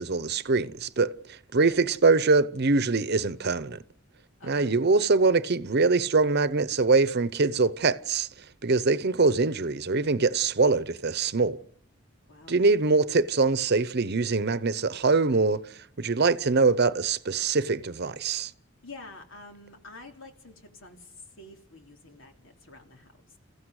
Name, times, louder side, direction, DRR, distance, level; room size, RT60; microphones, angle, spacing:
voice 1, 0.0-3.8 4.5-8.3 8.6-11.6 12.5-15.6 16.0-18.5, right 3 dB, 55° right, 0.8 m, -23 dB
voice 2, 4.4-4.8 8.9-9.3 12.3-12.6 18.8-23.4, left 2 dB, 85° left, 3.2 m, -48 dB
28.0 x 15.0 x 6.5 m
head